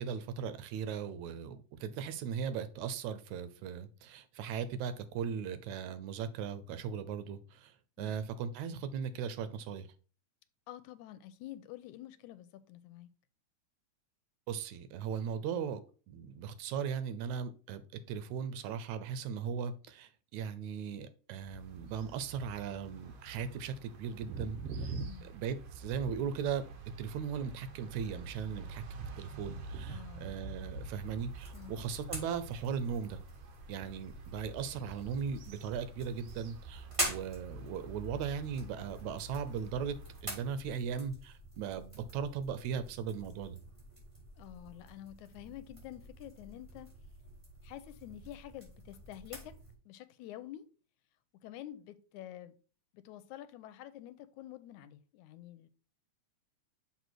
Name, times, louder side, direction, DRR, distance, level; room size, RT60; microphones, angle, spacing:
voice 1, 0.0-9.9 14.5-15.8 16.1-17.8 18.1-24.9 25.2-26.7 27.0-33.2 33.7-40.0 40.2-43.6, right 7 dB, 80° right, 2.0 m, -38 dB
voice 2, 10.7-13.1 24.9-25.3 29.9-30.3 31.5-31.9 44.4-46.9 47.6-49.6 49.9-50.7 51.4-52.5 52.9-55.7, left 13 dB, 85° left, 2.0 m, -48 dB
sound 1, 21.4-40.2, right 3 dB, 65° right, 1.7 m, -46 dB
sound 2, 31.0-49.7, right 1 dB, 10° right, 3.0 m, -46 dB
6.9 x 4.4 x 4.5 m
omnidirectional pair, 3.4 m